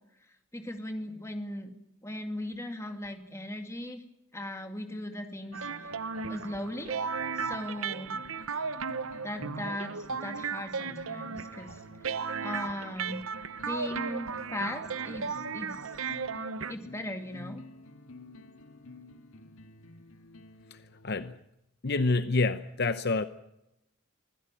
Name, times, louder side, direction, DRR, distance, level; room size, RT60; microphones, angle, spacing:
voice 1, 0.5-1.7 2.0-4.0 4.3-5.7 6.3-6.9 7.4-8.2 9.2-11.8 12.4-13.2 13.7-15.8 16.7-17.7, left 1 dB, 15° left, 5 dB, 2.3 m, -38 dB
sound 1, 5.5-21.4, left 2 dB, 70° left, 1.9 m, -51 dB
sound 2, 5.5-16.8, right 5 dB, 70° right, 0.9 m, -35 dB
voice 2, 21.8-23.3, left 3 dB, 50° left, 11 dB, 0.7 m, -27 dB
25.0 x 16.0 x 9.0 m, 0.87 s
head